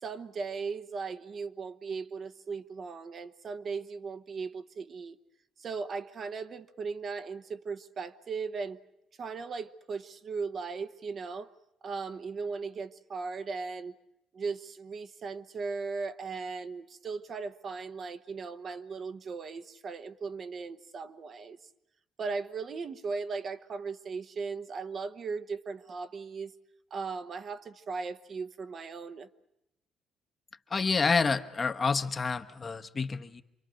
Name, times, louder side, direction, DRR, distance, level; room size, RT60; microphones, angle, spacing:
voice 1, 0.0-5.2 5.6-8.8 9.2-11.5 11.8-14.0 14.3-21.6 22.2-26.5 26.9-29.3, right 4 dB, 45° right, 10 dB, 1.1 m, -37 dB
voice 2, 30.7-33.4, left 4 dB, 30° left, 8 dB, 1.1 m, -28 dB
27.5 x 23.5 x 6.4 m, 0.85 s
cardioid pair, 95°, 0 cm